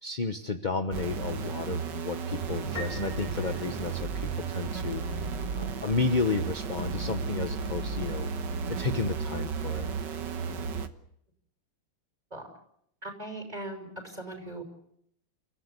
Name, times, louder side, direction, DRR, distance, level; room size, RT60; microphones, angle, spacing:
voice 1, 0.0-5.0 5.5-8.3 8.7-9.9, left 4 dB, 35° left, 7 dB, 0.7 m, -32 dB
sound 1, 0.9-10.9, right 5 dB, 60° right, 1.8 m, -33 dB
Piano, 2.7-4.6, left 2 dB, 5° left, 4.2 m, -43 dB
voice 2, 13.0-14.6, right 2 dB, 20° right, 3 dB, 5.9 m, -39 dB
29.5 x 16.0 x 8.3 m, 0.72 s
omnidirectional pair, 2.4 m